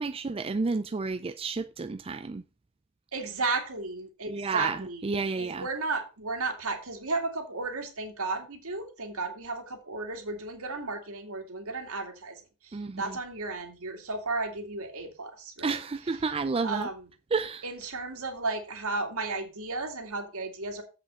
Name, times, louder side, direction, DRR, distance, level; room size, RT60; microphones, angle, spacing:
voice 1, 0.0-2.4 4.3-5.7 12.7-13.2 15.6-16.9 17.3-17.6, right 4 dB, 25° right, 0.4 m, -31 dB
voice 2, 3.1-5.0 5.4-15.8 16.6-17.0 17.6-20.8, right 3 dB, 70° right, 2.4 m, -34 dB
7.8 x 5.8 x 5.6 m
head